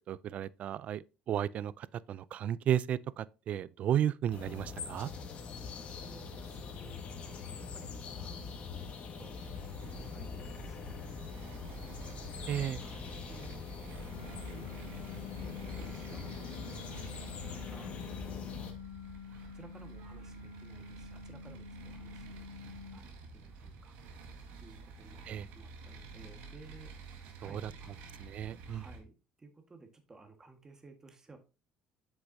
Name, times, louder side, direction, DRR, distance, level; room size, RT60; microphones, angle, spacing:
voice 1, 0.1-5.1 12.5-12.8 25.2-25.5 27.4-27.7 28.2-28.8, right 10 dB, 50° right, 0.3 m, -34 dB
sound 1, 4.3-18.7, left 5 dB, 45° left, 1.6 m, -43 dB
voice 2, 5.8-11.8 12.3-13.7 13.9-14.7 15.1-18.7 19.4-22.5 22.9-24.3 24.6-25.2 25.5-28.0 28.6-29.1 29.4-31.4, right 3 dB, 20° right, 1.5 m, -57 dB
sound 2, 9.4-29.0, right 4 dB, 85° right, 1.6 m, -50 dB
sound 3, 14.1-23.0, left 6 dB, 70° left, 1.6 m, -48 dB
8.1 x 6.2 x 2.7 m
cardioid pair, 120°, 3 cm